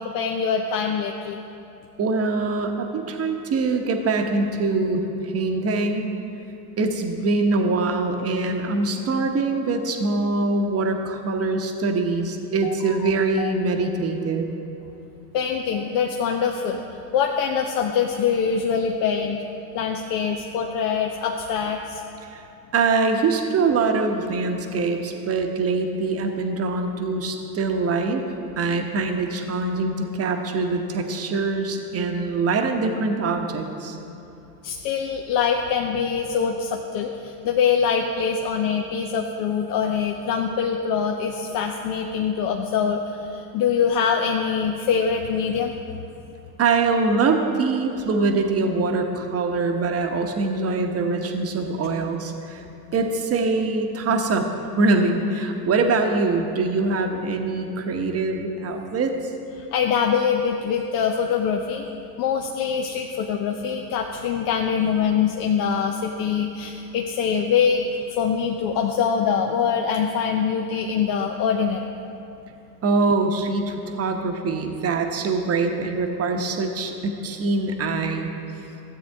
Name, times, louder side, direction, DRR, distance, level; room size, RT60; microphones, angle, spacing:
voice 1, 0.0-1.4 12.6-13.1 13.4-13.5 15.3-16.8 17.1-19.4 19.7-22.0 34.6-45.7 59.7-61.9 62.2-67.8 68.1-71.9, left 7 dB, 45° left, 3 dB, 0.7 m, -24 dB
voice 2, 2.0-6.1 6.8-14.5 22.3-22.4 22.7-28.2 28.6-34.0 46.6-52.6 52.9-54.5 54.8-59.1 72.8-78.3, right 3 dB, 30° right, 4 dB, 1.0 m, -23 dB
13.0 x 8.0 x 3.5 m, 3.0 s
hypercardioid pair, 85°, 48 cm